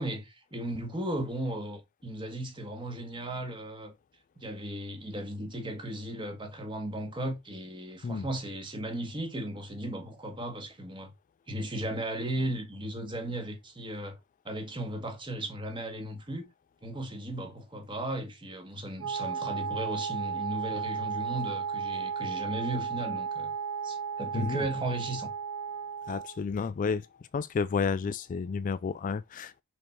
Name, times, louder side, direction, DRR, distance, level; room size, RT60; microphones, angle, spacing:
voice 1, 0.0-3.9 4.4-11.1 11.5-14.2 14.5-16.5 16.8-23.5 23.8-25.3, right 1 dB, 20° right, 1.7 m, -36 dB
Wind instrument woodwind instrument, 19.0-26.4, right 6 dB, 75° right, 1.0 m, -34 dB
voice 2, 24.3-24.7 26.1-27.1 27.3-29.6, left 5 dB, 35° left, 0.3 m, -31 dB
5.4 x 5.3 x 4.7 m
head